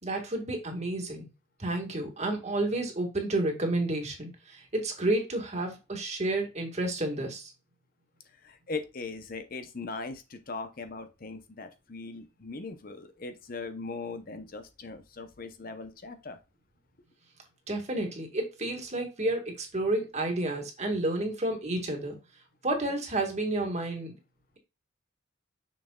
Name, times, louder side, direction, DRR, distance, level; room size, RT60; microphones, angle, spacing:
voice 1, 0.0-1.3 1.6-7.5 17.7-22.2 22.6-24.1, right 2 dB, 35° right, 2 dB, 1.9 m, -30 dB
voice 2, 8.4-16.4, left 3 dB, 45° left, 9 dB, 0.7 m, -39 dB
6.6 x 6.4 x 2.3 m, 0.27 s
head